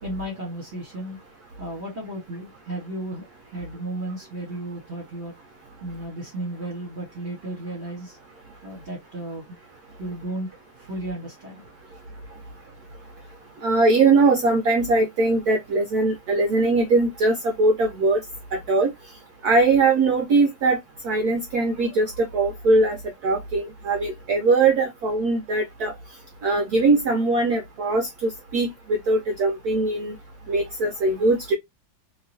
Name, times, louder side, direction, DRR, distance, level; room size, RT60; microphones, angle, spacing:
voice 1, 0.0-1.2 1.6-5.3 5.8-8.2 8.6-9.6 10.0-10.5 10.8-11.6, right 1 dB, 40° right, 1.2 m, -34 dB
voice 2, 13.6-18.2 18.5-18.9 19.4-20.8 21.0-23.0 23.2-25.9 26.4-30.2 30.5-31.5, right 3 dB, 75° right, 0.9 m, -21 dB
3.0 x 2.9 x 2.6 m
omnidirectional pair, 2.3 m